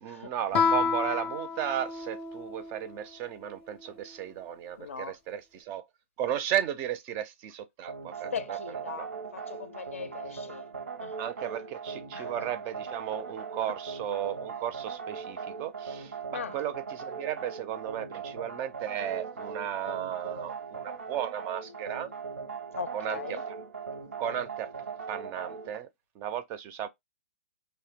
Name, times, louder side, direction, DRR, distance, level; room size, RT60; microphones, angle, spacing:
voice 1, 0.0-5.8 6.2-8.6 8.9-9.1 11.2-22.1 22.9-23.2 24.2-24.7 25.1-25.9 26.2-26.9, right 10 dB, 30° right, 0.4 m, -35 dB
Guitar, 0.5-3.0, left 5 dB, 25° left, 0.5 m, -29 dB
voice 2, 4.8-5.2 8.3-10.7 11.0-11.2 12.1-12.5 13.6-13.7 16.3-16.6 22.7-23.4, left 6 dB, 75° left, 0.5 m, -39 dB
sound 1, 7.9-25.8, right 5 dB, 85° right, 0.7 m, -40 dB
2.6 x 2.0 x 3.4 m
figure-of-eight pair, 120°, 7 cm